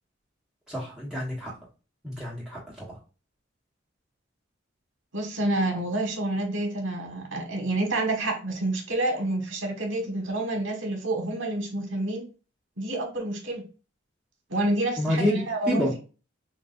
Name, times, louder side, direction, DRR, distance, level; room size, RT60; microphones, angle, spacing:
voice 1, 0.7-1.5 2.0-2.9 15.0-15.9, equal, 5° right, -6 dB, 1.2 m, -28 dB
voice 2, 5.1-12.3 12.8-13.6 14.5-16.0, right 2 dB, 85° right, 2 dB, 1.5 m, -28 dB
5.9 x 2.4 x 2.5 m, 0.33 s
head